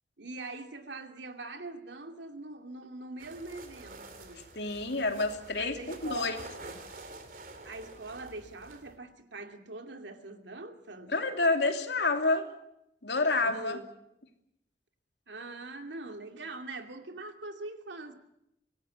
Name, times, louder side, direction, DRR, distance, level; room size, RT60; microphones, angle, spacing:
voice 1, 0.2-4.5 5.6-6.5 7.6-11.1 13.4-13.9 15.3-18.1, right 2 dB, 85° right, 2.6 m, -43 dB
sound 1, 3.2-9.0, right 2 dB, 50° right, 3.2 m, -48 dB
voice 2, 4.5-6.4 11.1-12.5 13.0-13.8, left 3 dB, 75° left, 2.9 m, -28 dB
25.5 x 18.0 x 8.5 m
head